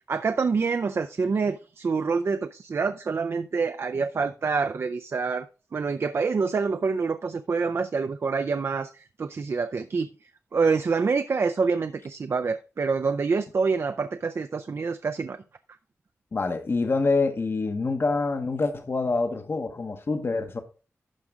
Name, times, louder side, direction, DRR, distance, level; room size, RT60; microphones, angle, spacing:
voice 1, 0.1-5.5 5.7-10.1 10.5-15.4, right 4 dB, 55° right, 0.4 m, -26 dB
voice 2, 16.3-20.6, left 3 dB, 50° left, 1.0 m, -26 dB
12.0 x 5.0 x 3.6 m
wide cardioid pair, 95°, 5 cm